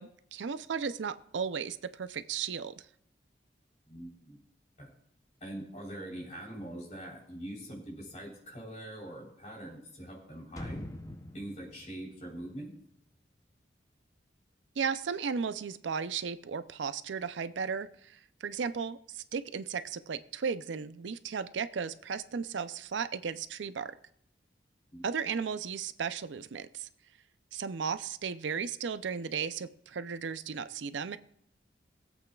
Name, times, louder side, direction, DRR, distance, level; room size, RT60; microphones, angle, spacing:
voice 1, 0.0-2.9 14.8-23.9 25.0-26.9 27.5-31.2, right 6 dB, 85° right, 13 dB, 0.5 m, -35 dB
voice 2, 3.9-4.4 4.8-4.9 5.4-10.8 11.3-12.7 24.9-25.0, right 1 dB, 40° left, -2 dB, 3.6 m, -43 dB
sound 1, 10.6-13.4 13.7-13.8, left 1 dB, 20° left, 0.7 m, -44 dB
21.5 x 8.2 x 2.3 m, 0.69 s
head